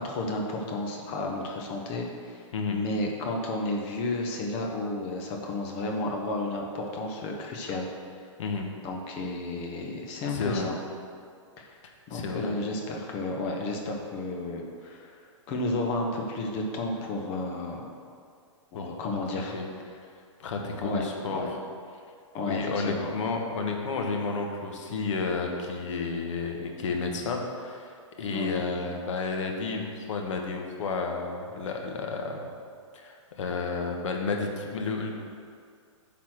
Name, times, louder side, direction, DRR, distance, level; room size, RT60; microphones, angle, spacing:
voice 1, 0.0-7.9 8.8-10.8 11.6-11.7 12.1-15.1 15.5-17.8 18.7-19.6 20.8-21.0 21.3-21.5 22.3-23.1 28.3-28.6, left 2 dB, 35° left, 1 dB, 1.1 m, -32 dB
voice 2, 8.4-8.7 10.3-10.7 11.8-12.6 18.7-19.2 19.5-19.7 20.0-20.1 20.4-21.6 22.4-32.4 32.9-35.1, left 4 dB, 70° left, 2 dB, 1.4 m, -32 dB
8.7 x 4.2 x 6.2 m, 2.2 s
hypercardioid pair, 135°, 16 cm